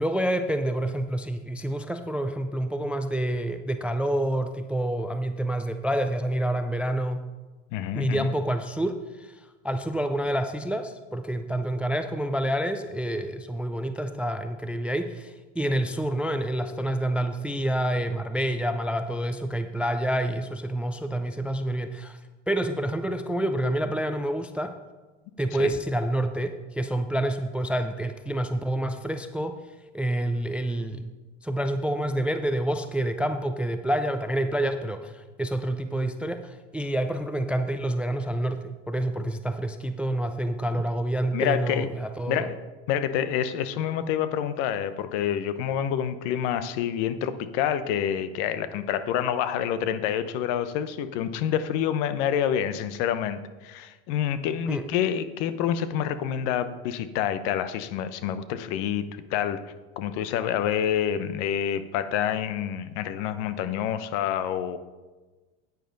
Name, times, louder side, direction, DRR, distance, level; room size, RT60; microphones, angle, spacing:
voice 1, 0.0-7.2 7.9-22.2 22.5-24.7 25.4-29.6 29.9-31.0 31.4-42.5 54.7-54.9, right 1 dB, 5° right, 8 dB, 0.3 m, -28 dB
voice 2, 7.7-8.3 25.6-25.7 41.3-41.9 42.3-42.5 42.9-59.6 60.0-64.8, left 9 dB, 60° left, 12 dB, 0.9 m, -27 dB
10.0 x 9.4 x 3.9 m, 1.2 s
supercardioid pair, 110°, 36 cm